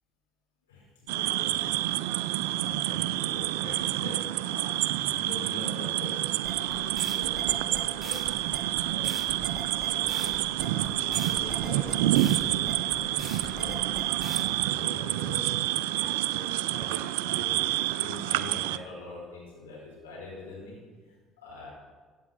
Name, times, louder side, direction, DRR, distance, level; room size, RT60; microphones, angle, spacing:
voice 1, 0.7-1.9 2.2-8.4 8.9-9.3 9.7-15.6 15.9-16.1 16.3-21.7, left 3 dB, 85° left, -5 dB, 4.7 m, -44 dB
sound 1, 1.1-18.8, right 15 dB, 75° right, 0.4 m, -28 dB
sound 2, 6.4-14.4, right 2 dB, 5° right, 3.9 m, -41 dB
16.5 x 7.6 x 5.9 m, 1.4 s
hypercardioid pair, 60°, 0 cm